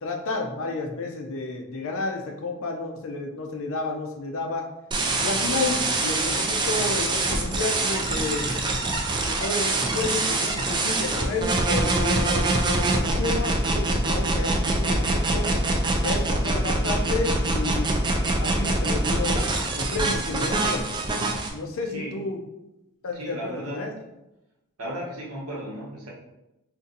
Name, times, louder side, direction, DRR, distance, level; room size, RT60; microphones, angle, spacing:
voice 1, 0.0-4.7 5.2-8.6 9.3-15.5 16.0-18.0 18.4-19.4 19.8-20.9 21.5-22.4 23.0-23.9, left 3 dB, 60° left, 3 dB, 0.5 m, -31 dB
sound 1, 4.9-21.5, right 2 dB, 20° right, 0.3 m, -24 dB
voice 2, 21.8-22.2 23.1-23.8 24.8-26.1, right 1 dB, 75° right, -5 dB, 1.1 m, -35 dB
2.6 x 2.5 x 3.8 m, 0.92 s
head